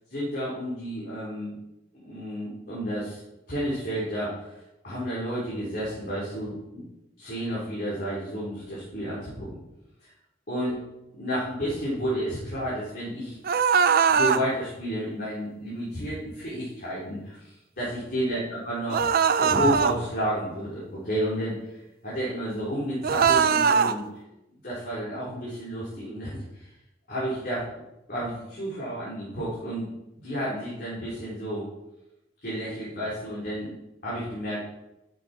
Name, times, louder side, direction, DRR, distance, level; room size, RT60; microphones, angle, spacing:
voice 1, 0.1-1.5 2.0-3.2 3.5-4.6 4.8-6.8 7.2-9.6 10.0-10.1 10.5-10.8 11.2-13.4 14.1-19.1 19.4-24.0 24.6-26.7 27.1-27.7 28.1-29.9 30.2-31.7 32.4-33.8 34.0-34.6, equal, 55° left, -8 dB, 3.7 m, -31 dB
sound 1, 13.4-14.4 18.9-19.9 23.0-23.9, right 6 dB, 55° right, 0.5 m, -21 dB
11.5 x 7.7 x 4.3 m, 0.92 s
head